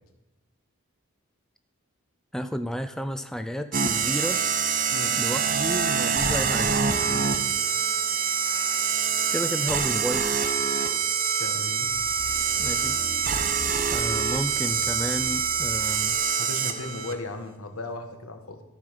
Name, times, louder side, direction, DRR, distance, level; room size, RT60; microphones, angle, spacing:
voice 1, 2.3-4.4 5.2-6.8 8.4-9.0 9.3-10.3 12.6-13.0 13.9-16.2, equal, ahead, 8 dB, 0.3 m, -32 dB
sound 1, 3.7-17.1, right 6 dB, 40° right, 0.7 m, -25 dB
voice 2, 11.4-11.9 16.4-18.6, left 2 dB, 80° left, 6 dB, 1.3 m, -36 dB
sound 2, 12.0-16.2 16.7-16.8, left 1 dB, 20° right, 1.2 m, -42 dB
13.0 x 5.0 x 5.7 m, 0.96 s
head